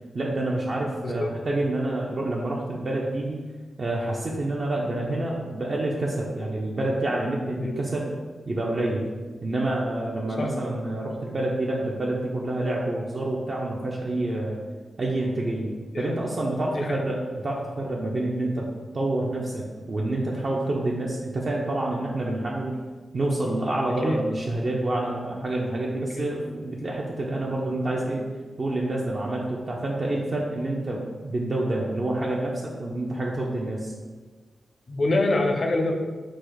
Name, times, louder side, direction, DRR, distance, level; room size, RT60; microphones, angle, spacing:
voice 1, 0.1-3.4 3.8-8.1 8.5-9.0 9.4-14.6 15.0-15.7 16.0-18.7 18.9-22.8 23.1-28.3 28.6-33.9, right 2 dB, 45° right, -3 dB, 0.5 m, -28 dB
voice 2, 1.0-1.3 5.1-5.2 6.4-6.5 7.6-7.8 10.4-10.5 15.9-16.2 16.7-17.0 24.0-24.2 26.2-26.3 34.9-35.9, left 2 dB, 50° left, 3 dB, 0.5 m, -25 dB
4.9 x 2.0 x 4.7 m, 1.4 s
wide cardioid pair, 110°, 0 cm